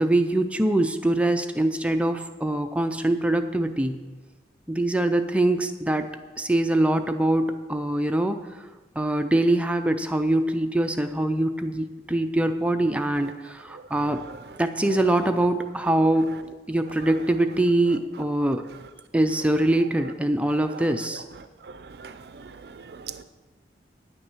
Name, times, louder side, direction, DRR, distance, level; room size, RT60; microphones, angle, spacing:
voice 1, 0.0-4.0 4.7-6.1 6.4-8.7 9.0-14.2 14.6-16.3 16.7-18.6 19.1-21.2, right 1 dB, 5° right, 7 dB, 0.4 m, -23 dB
voice 2, 21.6-23.2, right 6 dB, 65° right, 11 dB, 0.5 m, -41 dB
9.9 x 9.2 x 6.2 m, 1.3 s
head